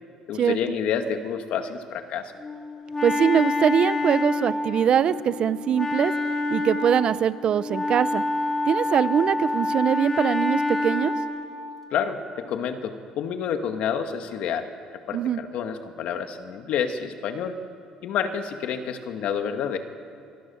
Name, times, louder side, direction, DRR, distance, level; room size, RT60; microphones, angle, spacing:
voice 1, 0.3-2.3 11.9-14.7 15.1-17.6 18.0-19.8, left 7 dB, 65° left, 6 dB, 2.1 m, -29 dB
Wind instrument woodwind instrument, 2.4-11.5, left 2 dB, 20° left, 3.5 m, -27 dB
voice 2, 3.0-6.1 6.5-8.2 8.6-11.1 15.1-15.4, right 8 dB, 50° right, 15 dB, 0.8 m, -22 dB
27.0 x 23.5 x 7.2 m, 2.6 s
cardioid pair, 120°, 2 cm